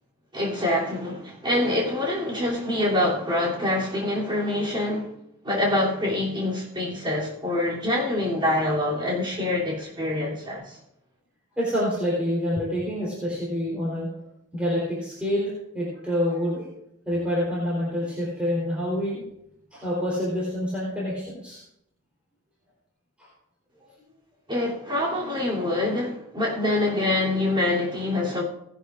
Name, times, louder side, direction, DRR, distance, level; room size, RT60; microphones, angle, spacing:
voice 1, 0.3-5.1 5.4-10.8 24.5-28.4, left 1 dB, 20° right, -5 dB, 3.1 m, -25 dB
voice 2, 11.6-14.1 14.5-16.7 17.1-19.2 19.7-21.6, equal, 5° right, -7 dB, 3.8 m, -27 dB
18.5 x 11.0 x 2.5 m, 0.81 s
head